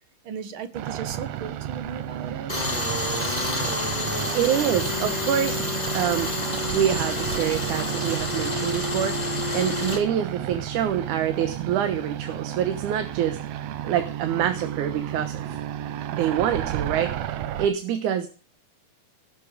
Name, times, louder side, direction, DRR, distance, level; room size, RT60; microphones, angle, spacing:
voice 1, 0.2-2.5, right 6 dB, 50° right, 11 dB, 1.9 m, -36 dB
sound 1, 0.7-17.7, right 11 dB, 70° right, 1.9 m, -32 dB
Tools, 2.5-10.0, left 2 dB, 15° left, 3.3 m, -28 dB
voice 2, 4.3-5.6 5.9-6.3 6.7-15.6 16.1-18.3, right 9 dB, 85° right, 9 dB, 2.6 m, -26 dB
17.5 x 8.4 x 4.9 m, 0.38 s
omnidirectional pair, 3.4 m